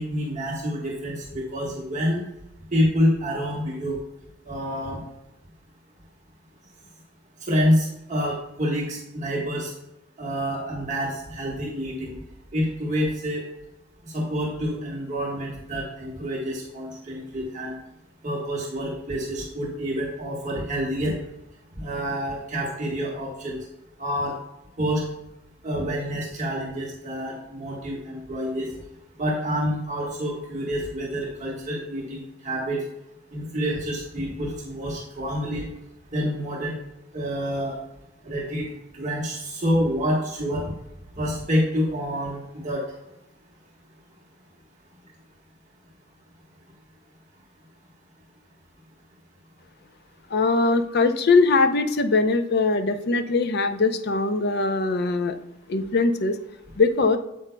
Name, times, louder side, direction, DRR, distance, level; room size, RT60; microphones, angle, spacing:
voice 1, 0.0-2.2 2.7-4.0 4.5-5.0 7.4-9.7 10.2-12.1 12.5-13.4 14.0-17.8 18.2-21.2 21.8-23.6 24.0-24.4 24.8-25.0 25.6-28.7 29.2-32.8 33.3-35.7 36.1-36.8 37.1-37.8 38.2-38.7 38.9-40.6 41.1-42.8, equal, 40° right, -3 dB, 1.4 m, -27 dB
voice 2, 50.3-55.3 55.7-56.4 56.8-57.2, left 3 dB, 55° left, 9 dB, 0.6 m, -21 dB
9.0 x 7.7 x 2.2 m, 0.90 s
head